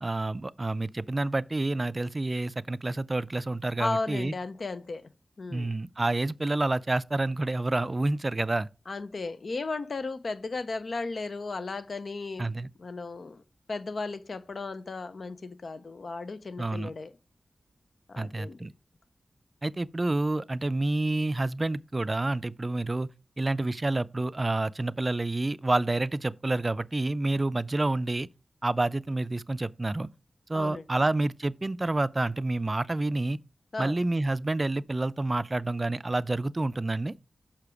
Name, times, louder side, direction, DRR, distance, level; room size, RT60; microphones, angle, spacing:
voice 1, 0.0-4.3 5.5-8.7 12.4-12.7 16.6-16.9 18.2-18.7 19.6-23.1 23.4-28.3 28.6-30.1 30.5-33.4 33.8-37.1, right 2 dB, 35° right, 0.3 m, -28 dB
voice 2, 3.8-5.0 5.4-5.7 8.9-12.5 12.8-13.4 13.7-17.1 18.1-18.6 30.5-31.0 33.7-34.0, left 3 dB, 65° left, 0.6 m, -35 dB
6.7 x 5.7 x 4.8 m
cardioid pair, 55°, 0 cm